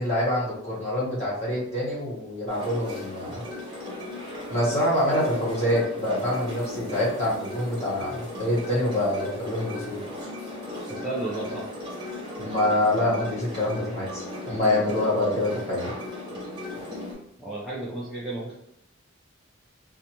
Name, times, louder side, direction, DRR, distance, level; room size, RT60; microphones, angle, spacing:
voice 1, 0.0-3.4 4.5-10.0 12.4-15.9, left 1 dB, 30° left, -6 dB, 1.2 m, -26 dB
sound 1, 2.5-17.1, left 1 dB, 25° right, 0.9 m, -36 dB
voice 2, 10.9-11.7 17.4-18.5, right 2 dB, ahead, -9 dB, 0.4 m, -33 dB
2.5 x 2.2 x 2.9 m, 0.75 s
head